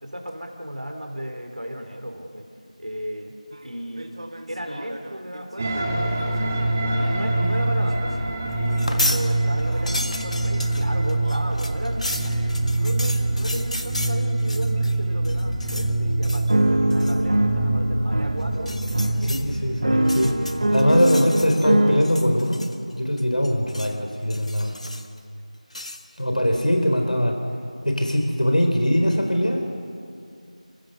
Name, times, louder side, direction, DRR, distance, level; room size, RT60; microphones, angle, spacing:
voice 1, 0.0-2.5 2.8-3.3 3.6-4.1 4.5-6.5 6.8-8.2 8.5-12.0 12.8-20.3 20.8-21.7, equal, 85° right, 3 dB, 4.0 m, -35 dB
sound 1, 3.5-3.6 4.0-8.3 9.7-9.8 10.5-10.7 11.2-11.6 12.2-12.6 13.1-13.5 14.0-14.2 14.8-15.0 15.6-15.8 16.5-22.0, right 1 dB, 45° right, 1.5 m, -26 dB
sound 2, 5.6-20.9, right 2 dB, 15° right, 1.1 m, -25 dB
sound 3, 8.7-9.2 9.6-15.0 15.2-15.9 16.2-16.5 16.9-17.2 18.5-19.4 20.0-21.7 22.0-22.9 23.2-24.0 24.3-25.2 25.7-26.0, left 1 dB, 60° left, 1.6 m, -32 dB
voice 2, 19.3-20.3 20.7-22.7 22.9-24.7 26.2-27.4 27.8-29.6, equal, 85° left, 3 dB, 4.1 m, -21 dB
29.5 x 15.5 x 6.8 m, 2.3 s
figure-of-eight pair, 175°, 4 cm